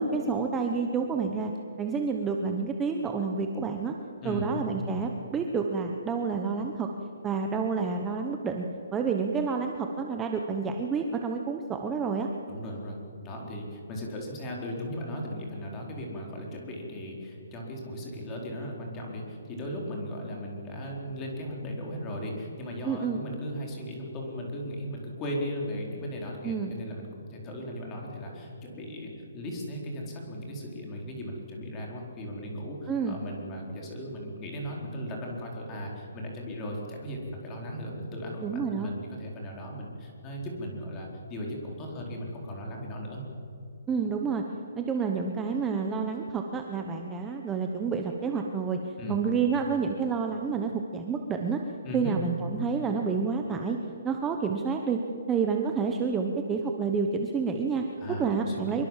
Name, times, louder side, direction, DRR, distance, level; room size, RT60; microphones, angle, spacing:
voice 1, 0.0-1.5 1.8-3.9 4.2-6.9 7.2-8.7 8.9-12.3 22.8-23.2 26.4-26.7 32.9-33.2 38.4-38.9 43.9-44.4 44.7-48.8 49.1-51.6 51.9-53.8 54.0-55.0 55.3-57.8 58.2-58.8, right 5 dB, 10° right, 3 dB, 1.0 m, -29 dB
voice 2, 12.5-43.2 49.0-49.2 51.8-52.2 58.0-58.8, equal, 15° left, -1 dB, 4.3 m, -37 dB
25.0 x 23.0 x 7.5 m, 2.6 s
hypercardioid pair, 170°, 0 cm